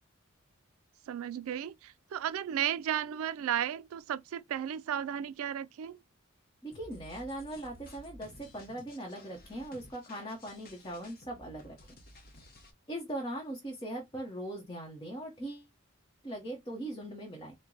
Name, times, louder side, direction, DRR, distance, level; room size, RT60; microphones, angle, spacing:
voice 1, 1.1-6.0, right 9 dB, 75° right, 0.3 m, -34 dB
voice 2, 6.6-11.8 12.4-12.5 12.9-15.7 16.2-17.5, right 1 dB, 20° left, 1.0 m, -40 dB
sound 1, 6.7-12.7, left 1 dB, 45° left, 0.8 m, -54 dB
4.5 x 2.2 x 3.8 m
head